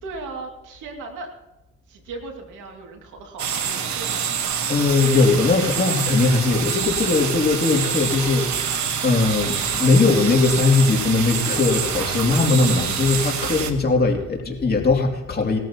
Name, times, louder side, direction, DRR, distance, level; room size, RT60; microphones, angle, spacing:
voice 1, 0.0-1.3 1.9-4.3 12.7-13.1, right 3 dB, 85° right, 3 dB, 2.5 m, -37 dB
sound 1, 3.4-13.7, right 7 dB, 70° right, 1.4 m, -26 dB
voice 2, 4.7-8.8 9.0-15.6, left 3 dB, 30° left, 1 dB, 2.7 m, -20 dB
20.0 x 13.5 x 3.0 m, 0.94 s
cardioid pair, 90°, 30 cm